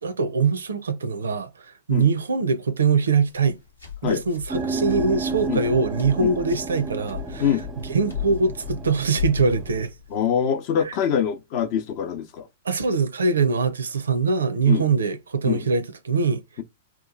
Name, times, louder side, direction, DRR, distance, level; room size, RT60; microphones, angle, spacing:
voice 1, 0.0-3.6 4.0-9.9 12.6-16.4, right 4 dB, 75° right, 0.5 m, -23 dB
sound 1, 3.3-10.2, left 9 dB, 90° left, 1.1 m, -36 dB
sound 2, 4.5-9.8, right 4 dB, 20° right, 0.5 m, -32 dB
voice 2, 10.1-12.5 14.7-14.8 15.5-15.6, left 8 dB, 45° left, 0.7 m, -24 dB
2.9 x 2.3 x 3.8 m
figure-of-eight pair, 105°, 0 cm